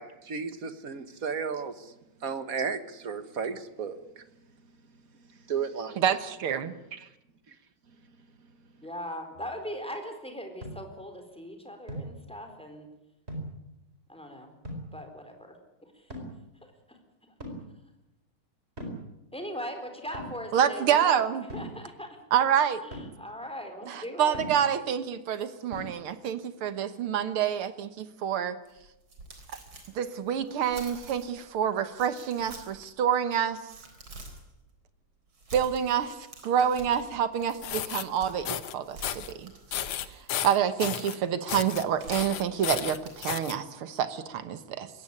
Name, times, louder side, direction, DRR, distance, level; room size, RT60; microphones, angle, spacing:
voice 1, 0.0-1.9 2.2-4.2 5.5-6.2 6.9-7.1, right 6 dB, 45° right, 11 dB, 1.6 m, -34 dB
voice 2, 6.0-6.8 20.5-21.4 22.3-22.8 23.9-28.6 30.0-33.6 35.5-36.2 36.4-39.5 40.4-44.9, right 8 dB, 90° right, 12 dB, 2.2 m, -27 dB
voice 3, 8.8-12.9 14.1-14.6 14.9-15.6 15.8-16.1 16.9-17.3 19.3-22.1 22.8-24.4, equal, 5° left, 5 dB, 3.9 m, -40 dB
sound 1, 9.4-9.5 10.6-10.9 11.9-12.2 13.3-13.7 14.7-15.0 16.1-16.4 17.4-17.7 18.8-19.1 20.1-20.4 21.5-21.8 22.9-23.2 24.3-24.7 25.7-25.8, equal, 30° right, 4.9 m, -39 dB
sound 2, 28.7-31.4 31.9-32.9 33.3-34.5 35.3-38.5 38.8-40.2 41.6-43.2, right 2 dB, 70° right, 4.7 m, -48 dB
sound 3, 37.5-38.0 38.5-38.7 39.0-39.3 39.7-41.2 41.5-41.8 42.1-43.6, left 10 dB, 85° left, 1.9 m, -33 dB
21.0 x 17.0 x 9.8 m, 0.91 s
omnidirectional pair, 2.3 m